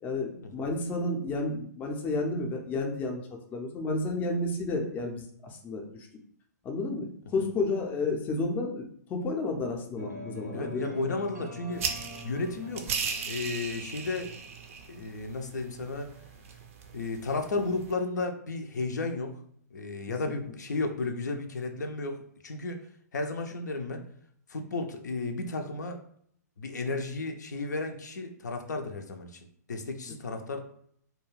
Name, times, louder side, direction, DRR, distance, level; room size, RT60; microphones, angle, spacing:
voice 1, 0.0-3.2 3.5-6.1 6.6-10.9, left 2 dB, 20° left, 2 dB, 0.4 m, -31 dB
sound 1, 10.0-15.9, equal, 90° right, 0.7 m, -46 dB
voice 2, 10.5-11.9 12.2-12.9 13.3-14.3 14.9-16.1 16.9-19.4 19.7-22.8 23.1-24.0 24.5-26.0 26.6-29.4 29.7-30.6, left 3 dB, 75° left, 5 dB, 0.4 m, -33 dB
sound 2, 11.7-17.9, right 6 dB, 50° right, 0.4 m, -38 dB
2.2 x 2.2 x 3.1 m, 0.64 s
hypercardioid pair, 125°, 9 cm